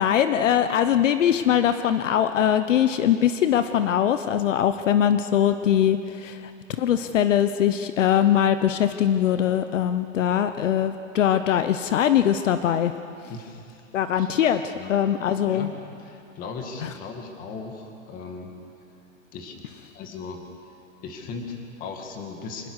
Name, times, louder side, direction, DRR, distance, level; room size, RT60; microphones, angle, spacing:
voice 1, 0.0-6.5 6.8-12.9 13.9-15.7 16.8-16.9, left 10 dB, 65° left, 10 dB, 1.0 m, -22 dB
voice 2, 13.3-13.9 14.1-14.4 14.7-14.9 15.4-15.7 16.0-18.5 19.3-19.6 19.9-20.4 21.0-22.7, left 4 dB, 20° left, 3 dB, 2.2 m, -37 dB
25.5 x 20.0 x 6.5 m, 2.6 s
hypercardioid pair, 160°, 40 cm